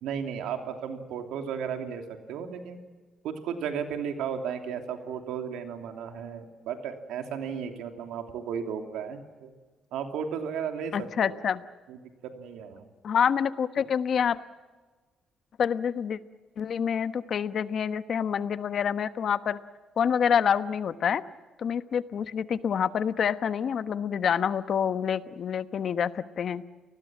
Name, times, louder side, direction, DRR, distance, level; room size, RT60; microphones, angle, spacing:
voice 1, 0.0-2.0 2.3-2.8 3.2-9.5 9.9-10.9 11.2-11.4 11.9-12.9, right 7 dB, 90° right, 5 dB, 2.9 m, -34 dB
voice 2, 10.9-11.6 13.0-14.4 15.6-16.2 16.6-19.6 20.0-21.2 21.6-26.6, left 7 dB, 60° left, 12 dB, 1.1 m, -27 dB
30.0 x 20.0 x 7.6 m, 1.3 s
cardioid pair, 90°, 0 cm